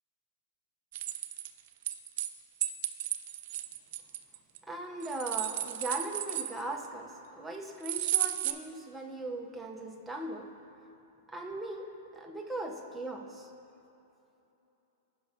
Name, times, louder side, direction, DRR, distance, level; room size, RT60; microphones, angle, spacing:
sound 1, 0.9-2.3 2.6-4.6 5.0-6.9 7.8-8.5, right 13 dB, 60° right, 0.4 m, -33 dB
voice 1, 4.6-10.5 11.3-13.5, right 2 dB, 5° right, 1 dB, 0.7 m, -39 dB
15.5 x 5.4 x 2.7 m, 3.0 s
hypercardioid pair, 135°, 0 cm